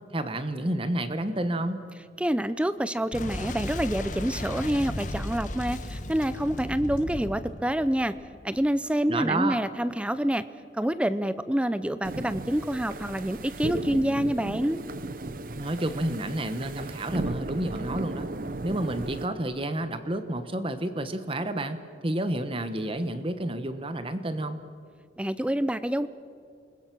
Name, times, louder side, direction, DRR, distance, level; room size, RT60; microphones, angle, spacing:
voice 1, 0.1-1.8 9.1-9.6 15.5-18.3 18.6-24.6, right 1 dB, 30° right, 10 dB, 1.2 m, -30 dB
voice 2, 2.2-8.1 8.4-10.4 10.7-14.8 25.2-26.1, equal, 5° right, 14 dB, 0.5 m, -27 dB
Boom, 3.1-8.7, left 1 dB, 45° left, 1.5 m, -35 dB
sound 1, 12.0-19.3, right 2 dB, 50° right, 0.8 m, -35 dB
28.0 x 21.0 x 6.2 m, 2.4 s
head